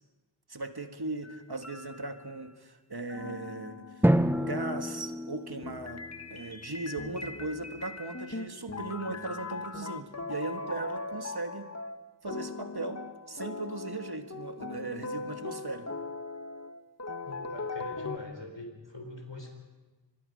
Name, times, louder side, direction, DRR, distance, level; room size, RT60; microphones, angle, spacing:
voice 1, 0.5-4.1 4.4-6.0 6.3-11.7 12.2-15.9, right 2 dB, 55° right, 7 dB, 1.7 m, -38 dB
sound 1, 1.2-2.5 3.1-18.2, left 3 dB, 35° left, 1.2 m, -40 dB
Drum, 4.0-6.5, equal, 5° right, 0.9 m, -28 dB
voice 2, 17.2-19.6, left 2 dB, 70° left, 4 dB, 4.3 m, -43 dB
26.0 x 22.0 x 5.3 m, 1.2 s
wide cardioid pair, 40°, 46 cm